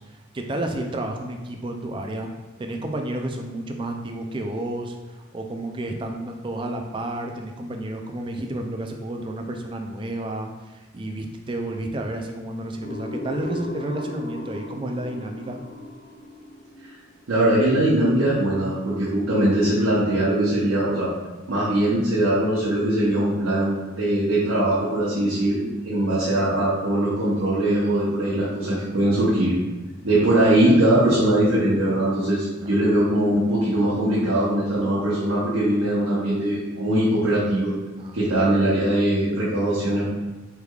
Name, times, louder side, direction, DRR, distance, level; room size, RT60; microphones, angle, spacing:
voice 1, 0.0-2.3 2.6-15.6 26.0-26.1 32.6-32.9 38.0-38.3, right 1 dB, 25° right, 3 dB, 0.3 m, -31 dB
sound 1, 12.8-17.5, left 1 dB, 45° left, 0.4 m, -36 dB
voice 2, 17.3-21.1 21.5-29.5 30.0-37.7 38.1-40.0, right 1 dB, 90° right, -8 dB, 0.9 m, -21 dB
4.6 x 3.4 x 2.4 m, 1.2 s
head